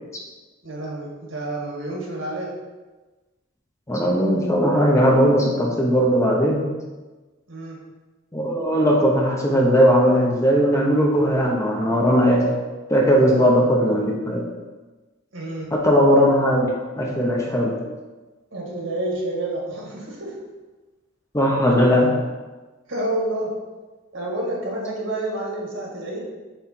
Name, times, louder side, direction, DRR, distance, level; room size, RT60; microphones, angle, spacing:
voice 1, 0.6-2.5 7.5-7.8 13.1-14.0 15.3-15.7 18.5-20.4 22.9-23.6 24.1-26.2, right 1 dB, 70° right, -3 dB, 1.9 m, -29 dB
voice 2, 3.9-6.7 8.3-12.5 12.9-14.4 15.7-16.7 17.0-17.7 21.3-22.1, equal, 15° left, -2 dB, 0.9 m, -18 dB
7.8 x 3.3 x 4.5 m, 1.2 s
head